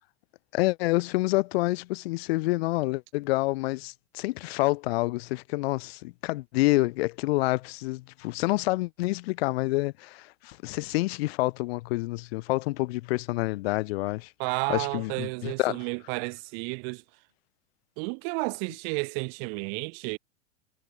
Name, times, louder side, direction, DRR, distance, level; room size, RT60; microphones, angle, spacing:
voice 1, 0.5-14.3 14.7-15.8, left 21 dB, 55° left, 0.7 m, -28 dB
voice 2, 14.4-17.0 18.0-20.2, right 40 dB or more, 50° right, 1.4 m, -32 dB
hypercardioid pair, 95°, 37 cm